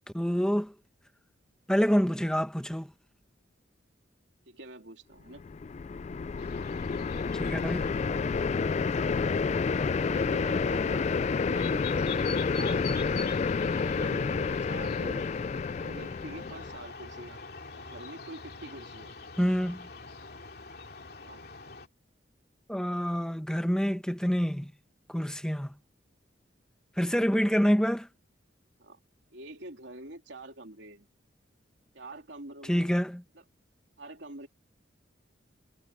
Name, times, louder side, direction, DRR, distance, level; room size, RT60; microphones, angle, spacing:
voice 1, 0.1-0.7 1.7-2.9 7.4-7.8 19.4-19.8 22.7-24.7 25.1-25.7 27.0-28.1 32.7-33.2, equal, 5° left, 1.0 m, -27 dB
voice 2, 4.5-5.4 9.9-11.0 11.4-13.3 13.8-15.3 15.8-17.4 17.7-19.1 21.2-21.4 28.8-29.0 29.3-31.1 31.9-32.9 33.3-33.4 34.0-34.5, right 2 dB, 75° right, 2.9 m, -45 dB
sound 1, 5.4-16.8, left 5 dB, 40° left, 0.3 m, -29 dB
sound 2, 6.4-21.9, left 5 dB, 55° left, 2.7 m, -46 dB
head